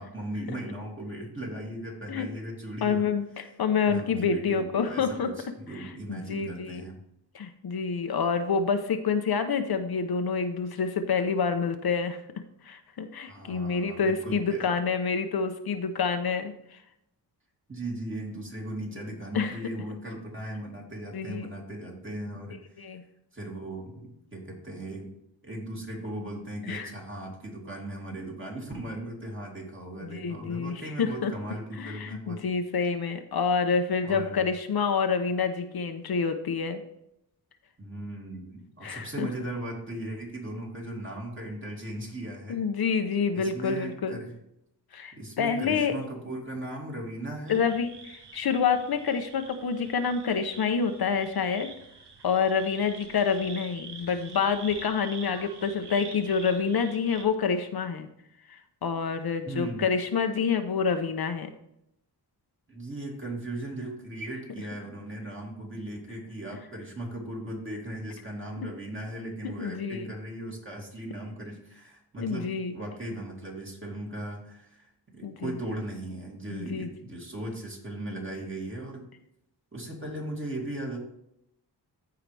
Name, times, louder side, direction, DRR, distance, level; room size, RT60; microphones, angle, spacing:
voice 1, 0.0-3.1 3.9-7.0 13.3-14.7 17.7-23.0 23.3-25.1 25.4-32.4 34.0-34.4 37.8-42.6 43.3-44.3 45.1-47.7 59.4-59.9 62.7-79.0 79.7-81.0, right 1 dB, 30° right, -1 dB, 2.7 m, -38 dB
voice 2, 2.8-5.3 5.7-6.8 7.3-12.2 12.6-16.8 19.3-19.6 21.1-21.5 22.8-23.0 26.7-26.9 30.0-31.3 31.8-36.8 38.8-39.3 42.5-44.2 44.9-45.9 47.5-51.7 52.2-58.1 58.5-61.5 69.6-70.1 72.2-72.8 75.2-75.5 76.5-76.9, left 5 dB, 60° left, 7 dB, 0.8 m, -28 dB
sound 1, 47.5-57.2, right 4 dB, 70° right, 1.4 m, -46 dB
14.5 x 4.8 x 3.4 m, 0.79 s
wide cardioid pair, 90°, 42 cm